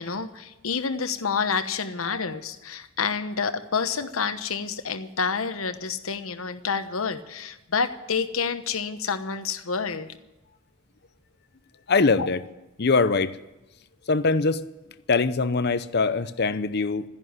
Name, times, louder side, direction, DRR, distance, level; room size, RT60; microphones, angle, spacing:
voice 1, 0.0-10.2 12.2-12.3, left 5 dB, 80° left, 1.1 m, -28 dB
voice 2, 11.9-12.4 12.8-13.4 14.1-14.7 15.1-17.0, left 4 dB, 50° left, 0.7 m, -22 dB
13.0 x 11.0 x 9.6 m
head